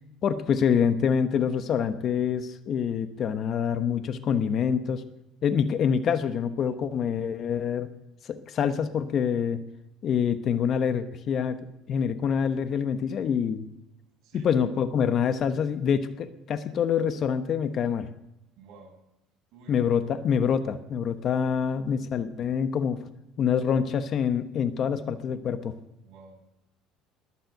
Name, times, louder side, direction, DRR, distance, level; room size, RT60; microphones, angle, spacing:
voice 1, 0.2-5.0 5.4-7.9 8.3-9.6 10.0-11.6 11.9-13.7 14.3-18.1 19.7-23.0 23.4-25.8, left 7 dB, 40° left, 10 dB, 1.1 m, -26 dB
voice 2, 18.6-19.0 19.5-19.8 24.8-25.0 26.0-26.5, right 4 dB, 60° right, 1 dB, 6.1 m, -50 dB
21.0 x 7.6 x 8.0 m, 0.87 s
cardioid pair, 140°, 0 cm